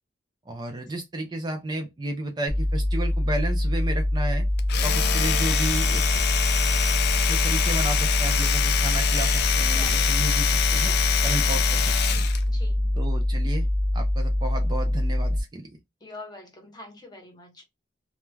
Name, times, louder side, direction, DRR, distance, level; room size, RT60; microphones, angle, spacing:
voice 1, 0.5-4.5 4.8-6.2 7.3-10.9 11.2-12.3 12.9-13.7 13.9-15.7, right 2 dB, 20° right, 0.4 m, -32 dB
sound 1, 2.5-15.4, left 1 dB, 85° right, 0.8 m, -24 dB
Domestic sounds home sounds, 4.6-12.4, left 9 dB, 60° left, 0.4 m, -25 dB
voice 2, 9.7-10.1 12.5-13.0 16.0-17.6, left 2 dB, 20° left, 0.8 m, -44 dB
2.2 x 2.1 x 3.1 m
head